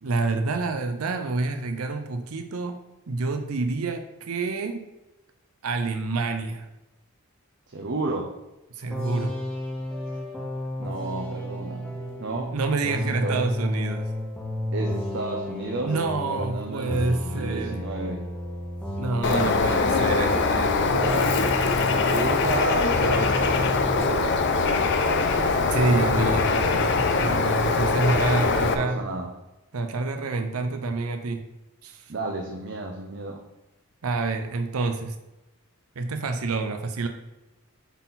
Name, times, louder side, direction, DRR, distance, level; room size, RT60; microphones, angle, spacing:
voice 1, 0.0-2.8 3.1-4.8 5.6-6.7 8.8-9.3 12.5-14.1 15.8-17.8 19.0-20.8 25.6-29.0 29.7-31.5 31.8-32.1 34.0-35.2 36.0-37.1, right 3 dB, 90° right, 6 dB, 0.6 m, -28 dB
voice 2, 7.7-8.3 10.8-12.5 12.9-13.4 14.7-15.9 16.3-18.3 20.5-21.4 22.0-25.3 28.6-29.3 32.1-33.4, right 2 dB, 55° right, 2 dB, 0.7 m, -32 dB
sound 1, 8.9-22.6 22.9-24.1, left 1 dB, 5° left, 1.0 m, -33 dB
Bird, 19.2-28.7, left 4 dB, 55° left, 0.6 m, -22 dB
8.1 x 4.1 x 4.1 m, 1.0 s
head